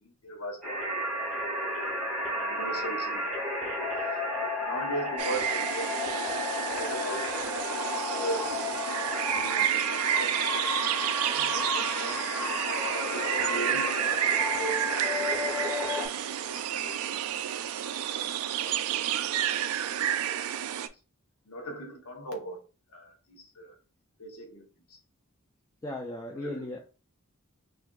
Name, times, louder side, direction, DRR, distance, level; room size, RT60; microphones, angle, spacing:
voice 1, 0.0-0.8 1.1-1.2 1.5-1.8 2.3-3.6 4.4-5.9 6.3-8.6 8.9-10.5 10.8-12.2 12.7-15.7 16.1-17.1 18.6-18.9 21.5-22.6 22.9-23.8 24.2-25.0 26.3-26.6, right 1 dB, 85° left, 0.9 m, -40 dB
sound 1, 0.6-16.1, left 1 dB, ahead, 1.8 m, -32 dB
sound 2, 5.2-20.9, right 10 dB, 80° right, 0.3 m, -30 dB
voice 2, 25.8-26.8, left 2 dB, 15° left, 0.4 m, -36 dB
5.8 x 2.6 x 2.3 m
head